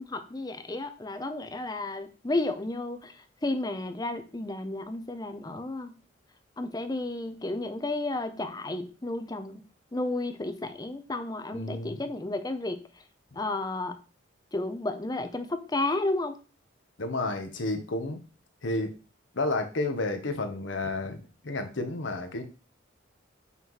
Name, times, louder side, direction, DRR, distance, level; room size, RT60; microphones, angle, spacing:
voice 1, 0.0-3.1 3.4-5.9 6.6-9.6 9.9-12.8 13.4-14.0 14.5-16.4, left 2 dB, 20° left, 8 dB, 0.6 m, -32 dB
voice 2, 11.5-12.0 17.0-18.2 18.6-18.9 19.3-22.4, left 2 dB, 75° left, 6 dB, 1.0 m, -31 dB
5.7 x 3.1 x 5.6 m, 0.35 s
head